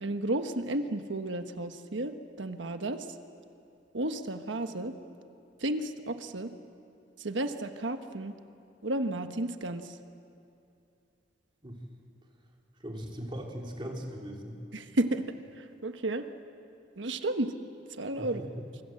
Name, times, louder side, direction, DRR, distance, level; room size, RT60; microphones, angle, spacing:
voice 1, 0.0-3.0 3.9-4.9 5.6-6.5 7.2-8.3 8.8-9.8 14.7-15.2 15.8-16.2 17.0-17.5 18.0-18.4, right 1 dB, 90° right, 8 dB, 1.3 m, -32 dB
voice 2, 12.8-14.6 18.2-18.7, equal, 25° right, 0 dB, 3.4 m, -39 dB
26.5 x 24.5 x 7.8 m, 2.6 s
head